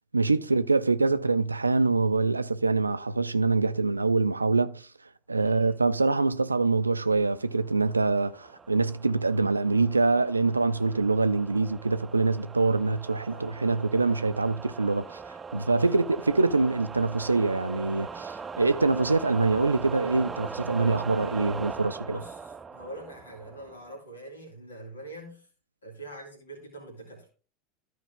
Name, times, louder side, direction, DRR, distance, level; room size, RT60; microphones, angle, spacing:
voice 1, 0.1-4.9 5.3-15.2 15.5-22.2, right 3 dB, 85° right, 0.4 m, -25 dB
voice 2, 5.3-5.7 13.3-13.5 15.8-16.0 22.0-25.5 25.8-27.3, right 1 dB, 75° left, 2.9 m, -44 dB
sound 1, 7.5-24.0, right 5 dB, 20° right, 0.4 m, -41 dB
13.5 x 4.9 x 3.6 m
figure-of-eight pair, 80°, 0 cm